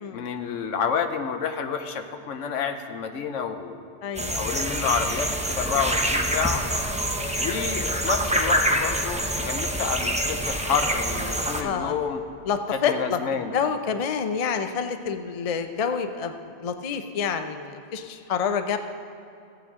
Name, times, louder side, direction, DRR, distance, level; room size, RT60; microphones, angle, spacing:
voice 1, 0.1-3.8 4.3-6.6 7.4-12.2 12.9-13.5, left 6 dB, 80° left, 7 dB, 1.1 m, -29 dB
voice 2, 4.0-4.5 11.6-11.9 12.4-18.8, left 6 dB, 45° left, 8 dB, 0.5 m, -28 dB
sound 1, 4.2-11.6, right 1 dB, 10° right, 0.4 m, -26 dB
16.0 x 8.8 x 3.7 m, 2.6 s
omnidirectional pair, 1.3 m